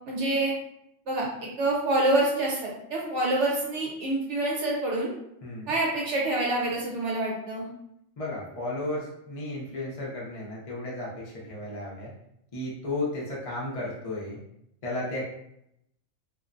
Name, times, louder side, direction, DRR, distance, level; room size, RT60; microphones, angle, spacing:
voice 1, 0.1-0.5 1.1-5.1 5.7-7.7, right 2 dB, 60° right, -3 dB, 1.0 m, -27 dB
voice 2, 5.4-5.7 8.2-12.1 12.5-14.4 14.8-15.3, left 2 dB, 55° left, -5 dB, 0.4 m, -34 dB
2.5 x 2.1 x 2.4 m, 0.78 s
omnidirectional pair, 1.4 m